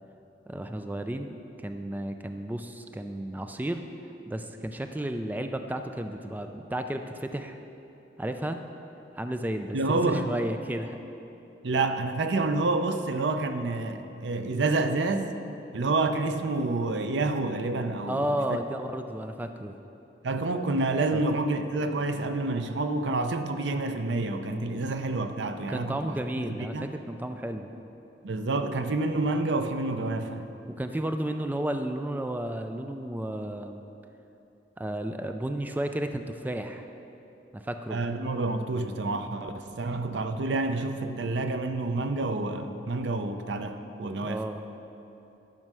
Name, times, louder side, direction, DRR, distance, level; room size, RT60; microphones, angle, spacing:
voice 1, 0.5-3.8 4.3-7.6 8.2-8.6 9.1-11.0 18.1-19.8 21.1-21.2 25.7-27.7 30.7-33.8 34.8-36.9 37.5-38.0 44.2-44.6, right 1 dB, 10° right, 6 dB, 0.3 m, -33 dB
voice 2, 9.7-10.3 11.6-15.3 15.7-18.6 20.2-26.2 26.5-26.9 28.2-30.5 37.9-44.4, right 2 dB, 80° right, 8 dB, 0.6 m, -28 dB
11.0 x 5.5 x 6.2 m, 2.9 s
head